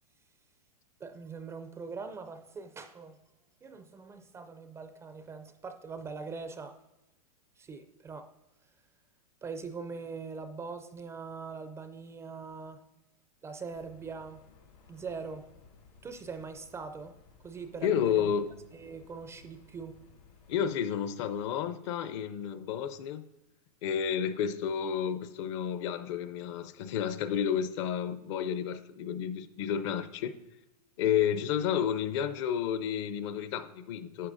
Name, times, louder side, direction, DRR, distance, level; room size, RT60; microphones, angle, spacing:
voice 1, 1.0-3.2 3.6-6.7 7.6-8.3 9.4-12.8 13.4-14.4 14.9-15.4 16.0-17.1 17.4-18.3 18.7-20.0, right 5 dB, 15° right, 0.4 m, -42 dB
sound 1, 13.7-20.7, left 5 dB, 85° left, 2.9 m, -59 dB
voice 2, 17.8-18.5 20.5-23.2 23.8-30.3 31.0-34.3, left 8 dB, 50° left, 0.6 m, -31 dB
11.0 x 8.0 x 2.6 m
hypercardioid pair, 135°, 20 cm